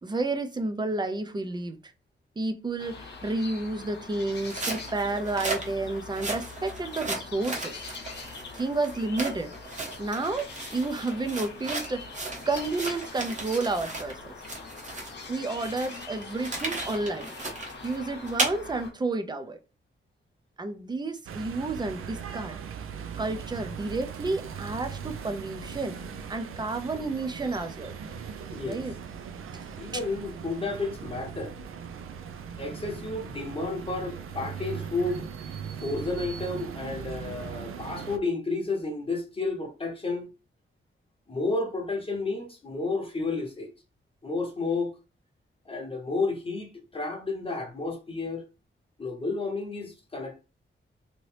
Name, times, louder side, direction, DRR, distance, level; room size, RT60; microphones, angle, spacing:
voice 1, 0.0-1.9 2.4-7.8 8.5-9.5 10.0-12.2 12.5-14.3 15.3-17.3 17.8-19.6 20.6-22.6 23.2-26.0 26.3-27.9 28.7-28.9, right 3 dB, 20° right, 0.5 m, -31 dB
sound 1, 2.8-18.9, left 4 dB, 55° left, 0.9 m, -43 dB
sound 2, 4.3-14.1 14.4-18.5, right 2 dB, 35° right, 0.9 m, -35 dB
sound 3, 21.3-38.2, right 7 dB, 85° right, 0.4 m, -39 dB
voice 2, 29.8-31.5 32.6-35.3 35.8-40.3 41.3-43.7 44.2-44.9 45.7-48.4 49.0-50.4, left 3 dB, 25° left, 0.9 m, -31 dB
3.0 x 2.7 x 3.1 m
wide cardioid pair, 165°, 21 cm